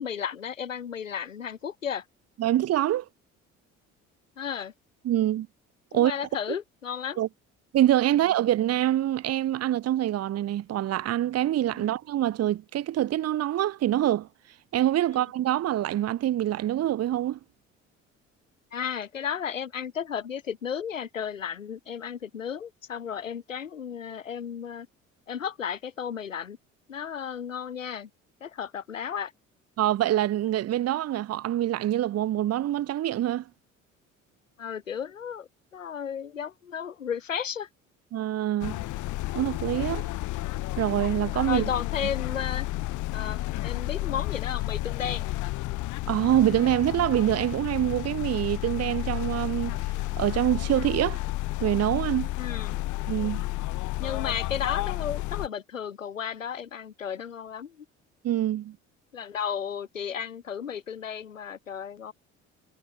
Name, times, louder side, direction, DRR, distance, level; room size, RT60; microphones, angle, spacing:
voice 1, 0.0-2.0 4.4-4.7 5.9-7.2 11.7-11.9 15.1-15.2 18.7-24.9 25.3-26.6 26.9-28.1 28.4-29.3 34.6-37.7 41.5-42.7 43.1-45.3 52.4-52.8 54.0-57.8 59.1-62.1, left 8 dB, 85° left, 6.9 m, -34 dB
voice 2, 2.4-3.1 5.0-5.5 5.9-6.1 7.2-7.3 7.7-14.3 14.7-17.4 29.8-33.5 38.1-38.8 39.3-40.1 40.8-41.7 46.1-49.8 50.2-51.2 51.6-52.3 53.1-53.4 58.2-58.8, right 12 dB, 40° right, 1.1 m, -25 dB
sound 1, 38.6-55.5, left 18 dB, 50° left, 1.0 m, -31 dB
figure-of-eight pair, 55°, 38 cm